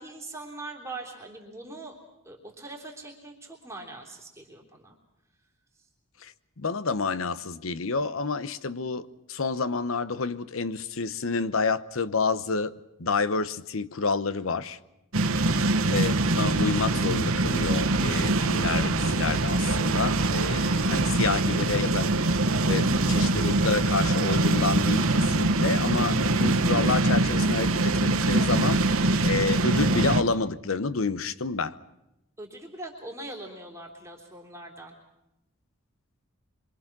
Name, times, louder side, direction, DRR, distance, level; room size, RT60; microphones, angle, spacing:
voice 1, 0.0-1.9 2.2-4.9 32.4-34.9, right 2 dB, 15° right, 3.4 m, -42 dB
voice 2, 6.2-12.7 13.0-14.8 15.9-22.2 22.6-28.9 29.2-31.8, left 4 dB, 75° left, 0.9 m, -29 dB
sound 1, 15.1-30.2, right 2 dB, 85° right, 1.3 m, -23 dB
27.0 x 24.0 x 6.1 m
head